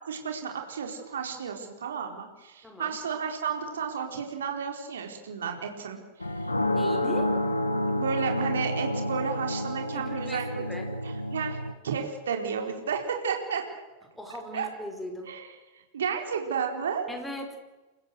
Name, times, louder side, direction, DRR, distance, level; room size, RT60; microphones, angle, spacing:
voice 1, 0.0-6.4 7.9-10.6 11.0-11.6 11.8-13.6 14.5-14.7 15.3-15.4 15.9-17.1, right 6 dB, 65° right, 3 dB, 4.4 m, -32 dB
voice 2, 2.6-3.0 6.7-7.3 9.9-10.9 14.2-15.3 17.1-17.6, left 1 dB, 5° left, 2 dB, 5.3 m, -39 dB
sound 1, 6.2-11.7, left 1 dB, 80° left, 1.7 m, -29 dB
29.0 x 15.5 x 6.5 m, 1.1 s
figure-of-eight pair, 90°, 0 cm